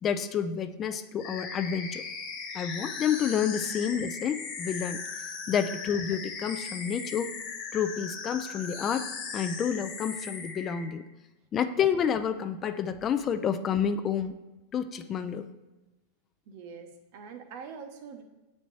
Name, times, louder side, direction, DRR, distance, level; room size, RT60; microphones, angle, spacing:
voice 1, 0.0-2.0 2.5-5.0 5.5-7.3 7.7-11.0 11.5-14.4 14.7-15.5, left 8 dB, 25° left, 10 dB, 0.3 m, -29 dB
sound 1, 1.2-10.9, left 5 dB, 50° left, 1.2 m, -38 dB
voice 2, 16.5-18.2, right 6 dB, 55° right, 5 dB, 0.8 m, -44 dB
8.0 x 4.2 x 3.1 m, 1.1 s
supercardioid pair, 135°, 0 cm